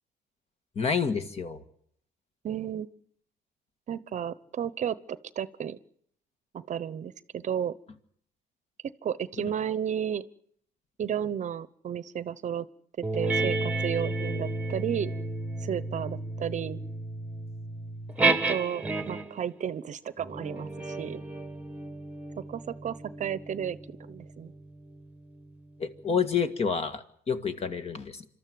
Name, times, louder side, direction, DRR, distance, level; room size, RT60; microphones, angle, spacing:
voice 1, 0.8-1.6 9.4-9.5 25.8-28.3, left 6 dB, 40° left, 10 dB, 1.8 m, -29 dB
voice 2, 2.4-2.9 3.9-5.8 6.5-7.7 9.0-10.2 11.0-12.7 13.1-15.1 15.6-16.8 18.2-21.2 22.5-24.5, right 9 dB, 45° right, 17 dB, 0.9 m, -33 dB
sound 1, 13.0-19.4 20.2-25.1, right 3 dB, 10° right, 1.4 m, -32 dB
26.5 x 13.5 x 9.3 m, 0.67 s
cardioid pair, 110°, 17 cm